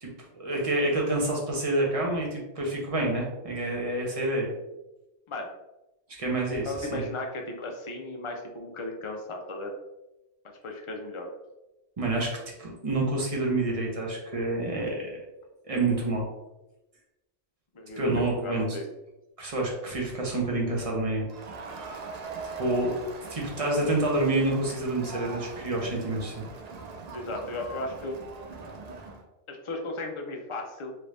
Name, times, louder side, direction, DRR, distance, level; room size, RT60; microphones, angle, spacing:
voice 1, 0.0-4.5 6.1-7.0 12.0-15.1 15.6-16.3 18.0-18.7 19.4-21.3 21.8-22.0 22.6-22.9 23.3-26.4, right 2 dB, 35° right, -2 dB, 0.8 m, -28 dB
voice 2, 6.6-9.7 10.4-11.3 17.7-18.8 27.1-28.2 29.5-30.9, left 2 dB, 45° left, 2 dB, 0.4 m, -36 dB
Crowd, 21.3-29.2, right 3 dB, 60° right, 0.4 m, -41 dB
3.2 x 2.6 x 3.2 m, 0.97 s
omnidirectional pair, 1.2 m